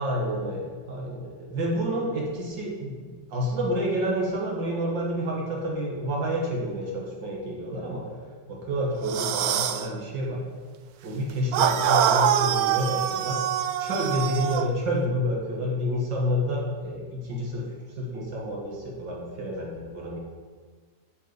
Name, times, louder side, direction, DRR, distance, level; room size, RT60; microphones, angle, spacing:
voice 1, 0.0-8.0 8.5-10.4 11.0-13.4 13.8-17.7 18.0-20.2, equal, 85° right, -2 dB, 2.7 m, -29 dB
sound 1, 9.0-9.9 11.5-14.7, right 10 dB, 70° right, 1.0 m, -24 dB
7.5 x 7.4 x 7.2 m, 1.5 s
omnidirectional pair, 1.9 m